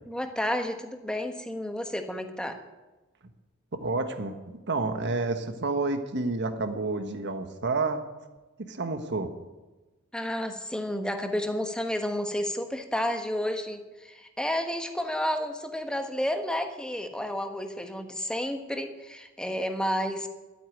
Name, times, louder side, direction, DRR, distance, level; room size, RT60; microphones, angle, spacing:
voice 1, 0.1-2.6 10.1-20.3, left 1 dB, 5° left, 6 dB, 1.2 m, -31 dB
voice 2, 3.7-8.0 8.6-9.3, right 3 dB, 55° right, 8 dB, 1.4 m, -29 dB
12.5 x 8.9 x 9.2 m, 1.2 s
head